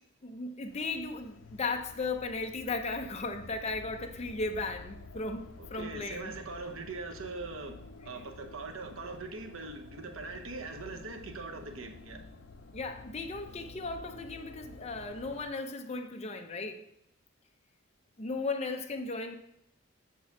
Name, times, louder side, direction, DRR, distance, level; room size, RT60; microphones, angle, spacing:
voice 1, 0.2-6.3 12.7-16.8 18.2-19.3, left 3 dB, 35° left, 4 dB, 0.7 m, -36 dB
sound 1, 0.7-15.5, left 3 dB, 75° left, 0.6 m, -50 dB
voice 2, 5.6-12.3, right 3 dB, 85° right, 4 dB, 0.9 m, -41 dB
7.0 x 4.6 x 5.9 m, 0.75 s
head